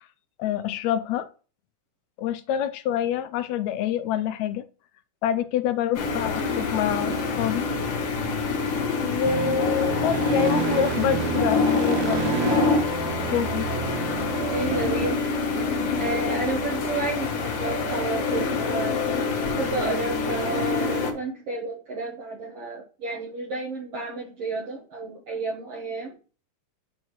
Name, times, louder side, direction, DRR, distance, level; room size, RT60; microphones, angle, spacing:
voice 1, 0.4-1.3 2.2-4.6 5.2-7.7 9.0-12.5 13.3-13.7, left 9 dB, 80° left, 12 dB, 1.7 m, -26 dB
sound 1, 5.9-21.1, left 4 dB, 60° left, 2.2 m, -26 dB
sound 2, 9.2-15.1, right 12 dB, 90° right, 1.4 m, -30 dB
voice 2, 14.4-15.2 16.0-19.1 19.6-26.1, right 3 dB, 60° right, -2 dB, 2.1 m, -31 dB
8.5 x 6.3 x 3.1 m, 0.37 s
omnidirectional pair, 3.5 m